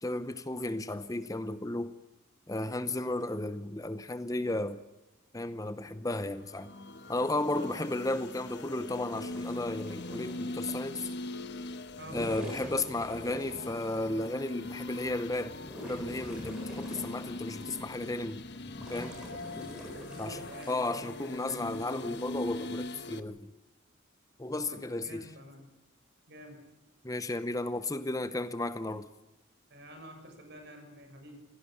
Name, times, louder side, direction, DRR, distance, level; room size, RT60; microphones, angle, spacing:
voice 1, 0.0-1.9 2.5-4.8 5.3-6.7 7.1-11.1 12.1-15.6 15.8-18.4 18.9-19.2 20.2-20.4 20.7-23.5 24.4-25.3 27.0-29.1, left 2 dB, 15° left, 0.7 m, -34 dB
sound 1, 6.3-23.2, left 2 dB, 55° left, 1.3 m, -42 dB
voice 2, 7.5-8.0 12.0-12.2 20.0-20.8 24.5-25.7 26.3-26.6 29.7-31.4, equal, 55° right, 6.7 m, -48 dB
sound 2, 9.1-10.8 11.9-14.0 14.6-14.7 15.2-17.7 18.2-20.8 22.0-22.3, left 1 dB, 5° right, 7.7 m, -45 dB
27.0 x 17.0 x 8.6 m
head